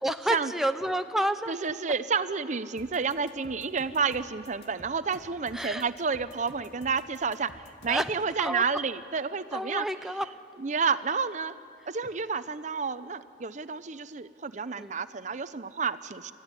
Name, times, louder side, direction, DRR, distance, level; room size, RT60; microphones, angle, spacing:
voice 1, 0.0-1.6 5.5-5.8 7.9-8.1 8.4-8.6 9.5-10.3 14.8-14.9, right 1 dB, ahead, 7 dB, 0.6 m, -29 dB
voice 2, 1.5-9.9 10.6-11.5 11.9-16.3, right 5 dB, 45° right, 13 dB, 0.7 m, -30 dB
sound 1, 2.8-8.1, left 1 dB, 75° left, 2.0 m, -52 dB
30.0 x 14.0 x 9.9 m, 2.4 s
head